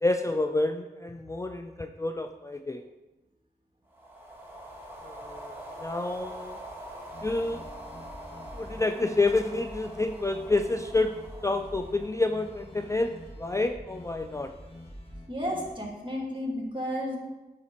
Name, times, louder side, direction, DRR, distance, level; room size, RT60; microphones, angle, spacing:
voice 1, 0.0-2.8 5.0-6.6 7.2-7.7 8.5-11.2 11.4-14.5, left 2 dB, 20° left, 7 dB, 0.4 m, -29 dB
sound 1, 3.9-13.4, right 1 dB, 15° right, 1.8 m, -44 dB
sound 2, 7.1-15.7, left 1 dB, 35° left, 1.8 m, -46 dB
voice 2, 15.3-17.2, equal, 30° right, -1 dB, 2.1 m, -32 dB
8.5 x 4.9 x 4.3 m, 1.1 s
cardioid pair, 45°, 17 cm